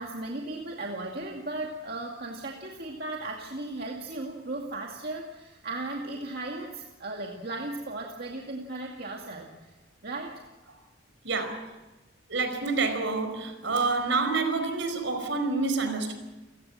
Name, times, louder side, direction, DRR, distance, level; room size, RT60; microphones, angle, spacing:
voice 1, 0.0-9.7 10.0-10.4, right 2 dB, 50° right, 2.3 m, -36 dB
voice 2, 11.2-11.7 12.3-16.1, right 3 dB, 70° right, 4.9 m, -28 dB
30.0 x 16.5 x 7.6 m
head